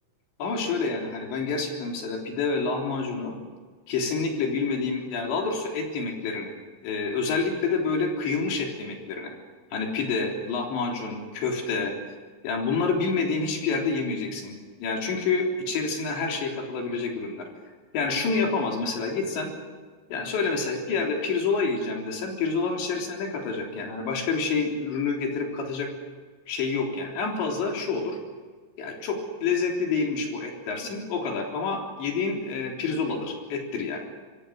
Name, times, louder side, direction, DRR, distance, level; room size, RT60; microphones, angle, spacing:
voice 1, 0.4-3.4 3.9-6.5 6.8-9.3 9.7-11.9 12.4-14.5 14.8-17.5 17.9-19.5 20.1-25.9 26.5-28.2 28.8-34.0, left 4 dB, 65° left, 0 dB, 5.8 m, -28 dB
27.0 x 22.5 x 6.5 m, 1.5 s
omnidirectional pair, 5.7 m